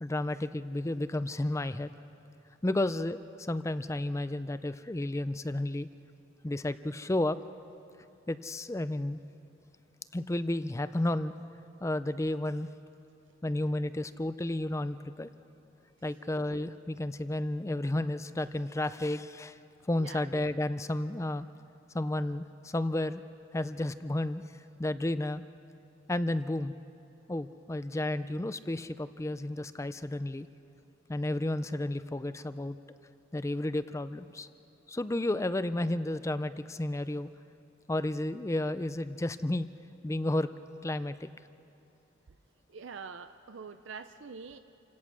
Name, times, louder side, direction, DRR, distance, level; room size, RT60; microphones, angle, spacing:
voice 1, 0.0-1.9 2.6-5.9 6.4-7.4 8.3-9.2 10.1-11.3 11.8-12.7 13.4-15.3 16.0-19.6 19.9-21.5 21.9-23.2 23.5-24.4 24.8-25.4 26.1-26.7 27.3-30.5 31.1-32.8 33.3-34.5 34.9-37.3 37.9-39.7 40.0-40.5 40.8-41.3, left 1 dB, 15° left, 13 dB, 0.4 m, -32 dB
voice 2, 42.7-44.6, right 5 dB, 70° right, 9 dB, 0.6 m, -44 dB
28.5 x 17.0 x 6.2 m, 2.8 s
head